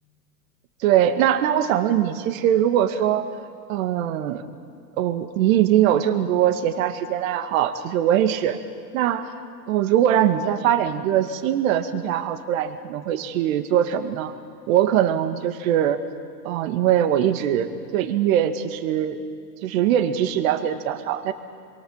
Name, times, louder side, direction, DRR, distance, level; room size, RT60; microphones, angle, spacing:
voice 1, 0.8-3.3 3.7-4.5 5.0-8.6 8.9-9.3 9.7-14.3 14.7-16.0 16.4-19.2 19.6-21.3, right 10 dB, 55° right, 8 dB, 2.1 m, -21 dB
26.5 x 23.0 x 7.3 m, 2.2 s
hypercardioid pair, 120°, 48 cm